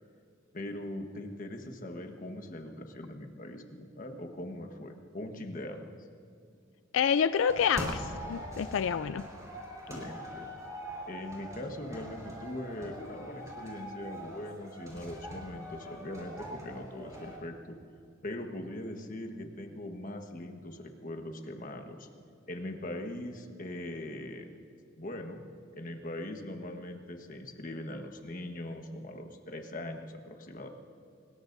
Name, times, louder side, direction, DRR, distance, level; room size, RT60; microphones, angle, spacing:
voice 1, 0.5-5.9 9.9-10.5 11.1-17.8 18.2-22.1 22.5-24.5 25.0-25.4 25.7-30.7, left 1 dB, 40° left, 4 dB, 1.3 m, -41 dB
voice 2, 6.9-9.2, left 7 dB, 65° left, 13 dB, 0.3 m, -28 dB
sound 1, 7.3-17.4, equal, 15° right, 4.5 m, -42 dB
25.0 x 20.5 x 2.7 m, 2.4 s
head